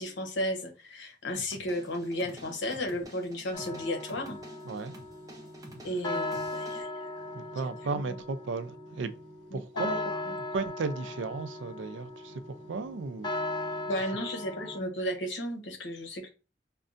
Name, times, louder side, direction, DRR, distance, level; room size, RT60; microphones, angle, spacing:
voice 1, 0.0-4.4 5.8-7.1 7.6-8.2 9.5-10.0 10.3-10.4 13.8-16.3, equal, 75° left, 0.9 m, -34 dB
sound 1, 1.3-6.8, right 1 dB, 20° right, 0.6 m, -50 dB
sound 2, 3.5-14.8, left 2 dB, 25° left, 0.5 m, -38 dB
voice 2, 4.7-5.0 7.3-9.1 9.5-10.0 10.5-12.4 12.7-13.5, right 4 dB, 80° right, 0.4 m, -35 dB
5.2 x 2.3 x 2.5 m
head